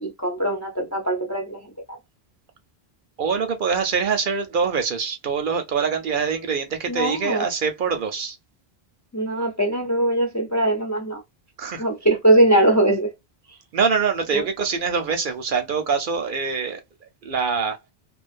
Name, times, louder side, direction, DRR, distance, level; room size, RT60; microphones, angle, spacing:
voice 1, 0.0-1.6 6.9-7.4 9.1-11.2 11.8-13.1 14.3-14.4, right 1 dB, 25° left, 0.4 m, -21 dB
voice 2, 3.2-8.4 11.6-11.9 13.7-16.8 17.2-17.8, right 5 dB, 60° right, 0.7 m, -24 dB
2.4 x 2.3 x 2.4 m
omnidirectional pair, 1.1 m